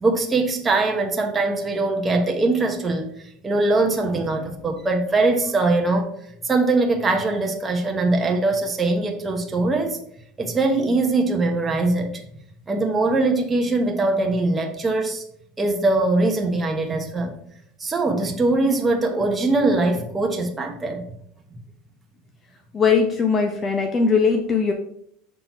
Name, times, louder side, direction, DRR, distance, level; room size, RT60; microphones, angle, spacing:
voice 1, 0.0-6.1 6.4-10.0 10.4-12.3 12.7-15.2 15.6-17.3 17.8-21.0, right 2 dB, 15° right, 3 dB, 1.1 m, -22 dB
voice 2, 22.7-24.7, left 5 dB, 25° left, 4 dB, 0.7 m, -20 dB
5.9 x 3.7 x 4.6 m, 0.70 s
supercardioid pair, 125°, 0 cm